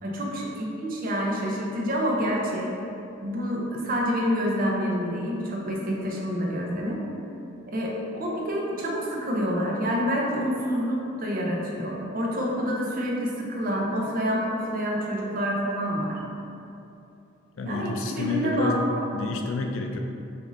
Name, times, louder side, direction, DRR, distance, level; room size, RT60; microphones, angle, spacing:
voice 1, 0.0-2.7 3.2-7.0 7.7-16.2 17.6-19.3, equal, 45° right, -2 dB, 0.6 m, -27 dB
voice 2, 17.5-18.9 19.1-20.0, left 3 dB, 75° left, 3 dB, 0.4 m, -29 dB
6.0 x 2.6 x 2.6 m, 2.7 s
head